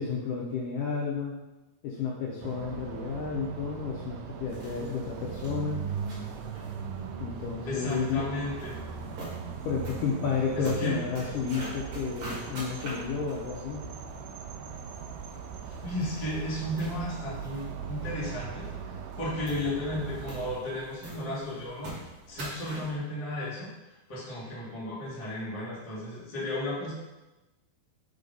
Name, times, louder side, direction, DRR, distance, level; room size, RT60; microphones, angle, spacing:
voice 1, 0.0-1.3 1.8-5.9 7.2-8.3 9.7-13.9, left 5 dB, 80° left, -2 dB, 2.0 m, -31 dB
sound 1, 2.4-20.6, right 7 dB, 90° right, 1.9 m, -39 dB
sound 2, 4.5-23.0, right 1 dB, 45° right, 2.1 m, -46 dB
voice 2, 7.6-8.8 10.5-11.3 15.6-18.7 19.2-21.9 22.3-23.7 24.1-26.9, left 1 dB, 20° left, -8 dB, 0.9 m, -34 dB
5.6 x 3.9 x 5.3 m, 1.1 s
omnidirectional pair, 4.4 m